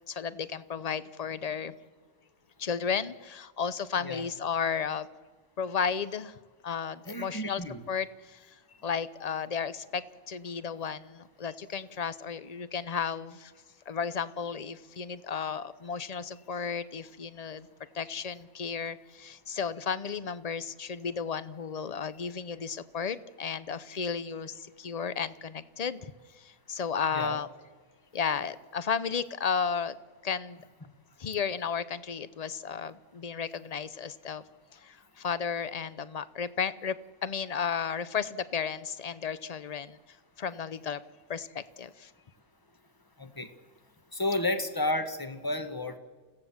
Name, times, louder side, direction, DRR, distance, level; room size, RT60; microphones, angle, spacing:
voice 1, 0.1-1.7 2.6-5.1 5.6-6.4 6.6-7.6 7.9-8.6 8.8-13.5 13.9-17.7 17.9-26.1 26.4-27.5 28.1-30.0 30.2-30.6 31.2-34.4 34.7-36.9 37.2-40.0 40.4-41.0 41.3-42.1, left 6 dB, 40° left, 15 dB, 0.6 m, -33 dB
voice 2, 7.1-7.8 27.1-27.4 43.2-43.5 44.1-46.0, left 1 dB, 15° left, 8 dB, 1.4 m, -31 dB
29.5 x 16.5 x 7.3 m, 1.4 s
omnidirectional pair, 1.4 m